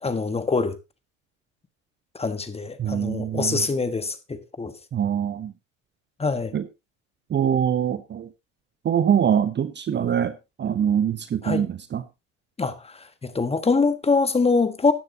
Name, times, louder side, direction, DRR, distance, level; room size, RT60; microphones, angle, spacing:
voice 1, 0.0-0.8 2.1-4.7 6.2-6.5 11.4-11.6 12.6-14.9, left 4 dB, 15° left, 1.4 m, -24 dB
voice 2, 2.8-3.6 4.9-5.5 6.5-6.7 7.3-8.3 8.8-12.0, right 9 dB, 25° right, 0.8 m, -24 dB
13.5 x 10.0 x 2.8 m
hypercardioid pair, 75°, 39 cm